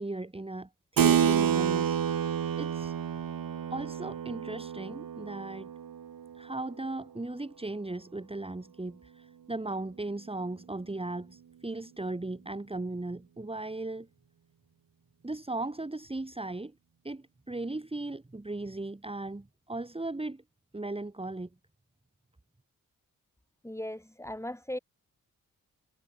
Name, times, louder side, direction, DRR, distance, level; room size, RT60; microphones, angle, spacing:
voice 1, 0.0-2.0 2.2-2.9 3.7-5.7 6.4-14.1 15.2-16.7 17.0-20.4 20.7-21.5, right 2 dB, 15° right, 1.8 m, -37 dB
Keyboard (musical), 1.0-7.0, right 8 dB, 80° right, 2.4 m, -29 dB
voice 2, 23.6-24.8, left 1 dB, 10° left, 3.4 m, -38 dB
cardioid pair, 65°, 34 cm